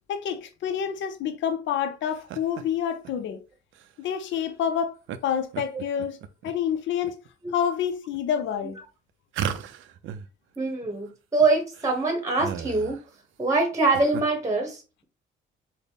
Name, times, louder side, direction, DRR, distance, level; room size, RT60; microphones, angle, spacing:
voice 1, 0.1-3.4 4.0-5.0 5.2-7.2 7.5-8.8, left 8 dB, 70° left, 0.5 m, -28 dB
sound 1, 2.1-2.6 3.0-3.1 3.7-3.9 5.1-5.2 5.5-6.5 7.0-7.5 8.1-8.2 9.3-10.3 10.5-10.6 10.8-10.9 11.4-11.5 11.7-13.1 13.7-14.2, right 8 dB, 75° right, 0.4 m, -35 dB
voice 2, 10.6-13.0 13.4-15.0, right 3 dB, 15° right, 1.0 m, -24 dB
4.0 x 2.1 x 3.4 m
cardioid pair, 90°, 20 cm